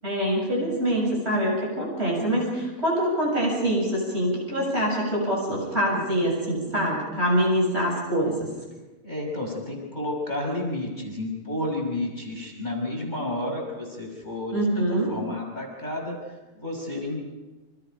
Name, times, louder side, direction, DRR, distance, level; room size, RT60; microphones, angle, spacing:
voice 1, 0.0-8.5 14.5-15.1, equal, 45° right, -2 dB, 7.7 m, -25 dB
voice 2, 9.0-14.6 14.9-16.2 16.5-17.4, left 1 dB, 30° left, -1 dB, 6.1 m, -31 dB
29.0 x 26.0 x 5.2 m, 1.2 s
omnidirectional pair, 1.5 m